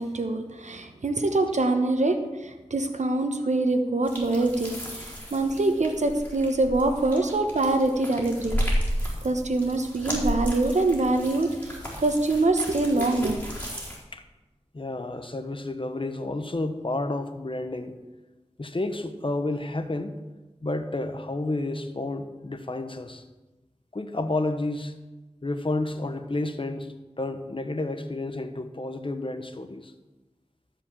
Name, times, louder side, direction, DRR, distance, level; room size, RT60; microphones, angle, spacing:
voice 1, 0.0-8.6 9.2-13.4, right 2 dB, 85° right, 6 dB, 1.0 m, -24 dB
sound 1, 4.0-14.0, equal, 15° left, 4.2 m, -33 dB
voice 2, 14.7-18.0 18.6-20.2 20.6-23.2 23.9-24.9 25.4-29.9, left 2 dB, 50° left, 8 dB, 1.0 m, -31 dB
13.5 x 5.2 x 7.4 m, 1.1 s
wide cardioid pair, 45°, 12 cm